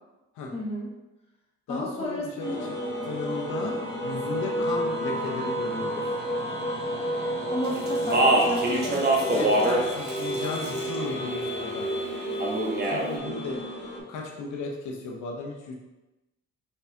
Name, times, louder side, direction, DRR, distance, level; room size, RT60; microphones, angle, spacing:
voice 1, 0.5-0.9 1.7-2.7 7.5-9.7, left 1 dB, 20° left, -3 dB, 0.9 m, -33 dB
voice 2, 1.7-2.5 3.1-3.8 4.0-6.0 9.3-11.9 12.8-13.6 14.1-15.8, left 3 dB, 85° left, 0 dB, 0.9 m, -35 dB
sound 1, 2.4-14.0, equal, 35° left, 1.4 m, -31 dB
Speech, 7.9-9.8 10.1-11.0 12.4-13.1, right 1 dB, 35° right, 1.0 m, -23 dB
4.2 x 4.1 x 2.7 m, 1.0 s
cardioid pair, 90°, 30 cm